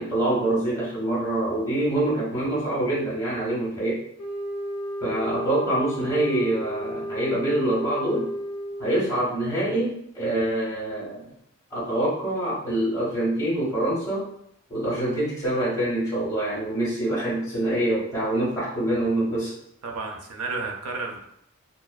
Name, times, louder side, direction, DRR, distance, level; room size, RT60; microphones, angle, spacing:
voice 1, 0.0-4.0 5.0-8.3 8.8-11.3 11.7-14.3 14.7-19.5, right 1 dB, 15° left, -6 dB, 1.0 m, -25 dB
sound 1, 4.2-9.1, equal, 90° left, 0.4 m, -33 dB
voice 2, 19.8-21.2, right 3 dB, 85° right, 2 dB, 0.5 m, -32 dB
2.4 x 2.3 x 2.2 m, 0.72 s
head